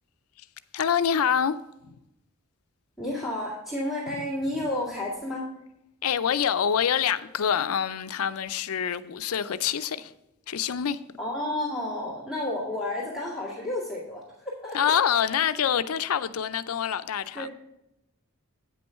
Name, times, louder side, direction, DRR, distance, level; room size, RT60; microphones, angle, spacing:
voice 1, 0.7-1.6 1.8-2.0 4.1-4.2 6.0-10.1 10.5-11.0 14.7-17.5, left 8 dB, 90° left, 0.5 m, -26 dB
voice 2, 3.0-5.4 11.2-14.9 17.3-17.5, left 1 dB, 5° right, 1.9 m, -31 dB
8.8 x 5.4 x 5.6 m
head